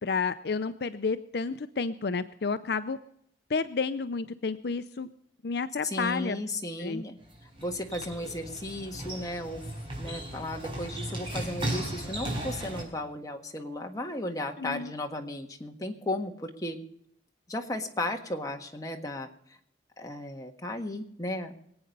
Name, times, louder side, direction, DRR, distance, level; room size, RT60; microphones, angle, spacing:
voice 1, 0.0-3.0 3.5-5.1 5.4-6.4 6.8-7.0 14.6-14.9, left 4 dB, 65° left, 12 dB, 0.5 m, -31 dB
voice 2, 5.8-7.2 7.6-9.6 10.0-16.8 17.5-19.3 20.0-21.7, left 1 dB, 20° left, 3 dB, 1.5 m, -35 dB
sound 1, 7.2-12.8, right 1 dB, 30° right, 4.7 m, -36 dB
22.5 x 8.8 x 5.3 m, 0.69 s
head